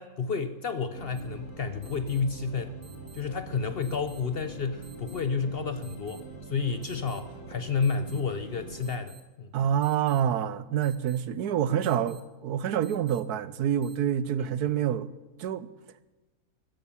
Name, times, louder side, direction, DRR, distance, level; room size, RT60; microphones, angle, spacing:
voice 1, 0.0-2.8 3.1-9.5 14.4-14.5, left 5 dB, 50° left, 0.8 m, -31 dB
sound 1, 0.9-8.9, right 1 dB, 65° left, 3.3 m, -44 dB
sound 2, 1.1-1.2 1.8-2.2 2.8-3.2 3.8-4.2 4.8-5.2 5.8-6.2 6.8-7.2 7.8-8.2 8.8-9.2 9.8-10.2 10.8-11.2 11.8-12.2 12.8-13.2 13.8-13.9, right 8 dB, 35° right, 2.6 m, -54 dB
voice 2, 9.5-15.1 15.4-15.7, right 9 dB, 80° right, 1.2 m, -27 dB
14.5 x 14.0 x 7.2 m
omnidirectional pair, 1.7 m